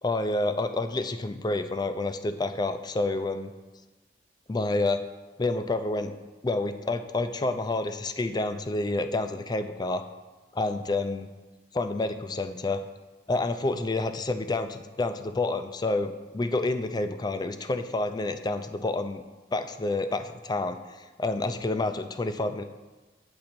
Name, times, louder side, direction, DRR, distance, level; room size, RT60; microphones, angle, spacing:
voice 1, 0.0-3.5 4.5-5.0 5.4-6.1 6.4-10.0 10.5-11.3 11.7-12.8 13.3-19.2 19.5-20.8 21.2-22.6, left 2 dB, 25° left, 9 dB, 0.4 m, -28 dB
8.6 x 3.8 x 5.9 m, 1.3 s
head